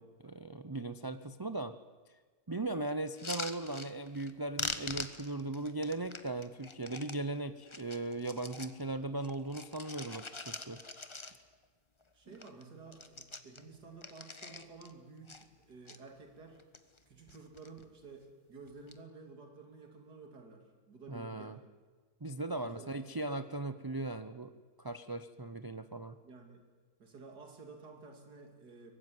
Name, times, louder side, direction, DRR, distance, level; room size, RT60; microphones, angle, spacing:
voice 1, 0.0-1.8 2.5-10.8 12.3-12.4 21.1-21.6 22.2-24.5 24.8-26.2, right 2 dB, 35° right, 10 dB, 0.3 m, -38 dB
sound 1, 3.1-4.3 4.6-7.2 7.6-8.8 9.2-11.7 12.0-12.1 12.3-12.6 12.9-14.9 15.3-16.0 16.5-17.0 17.3-17.8 18.7-19.0, left 3 dB, 20° left, 1.1 m, -43 dB
voice 2, 12.1-16.6 17.1-21.6 22.6-23.0 26.2-26.7 27.0-28.9, right 4 dB, 80° right, 3 dB, 3.4 m, -52 dB
23.5 x 20.0 x 9.5 m, 1.4 s
omnidirectional pair, 1.7 m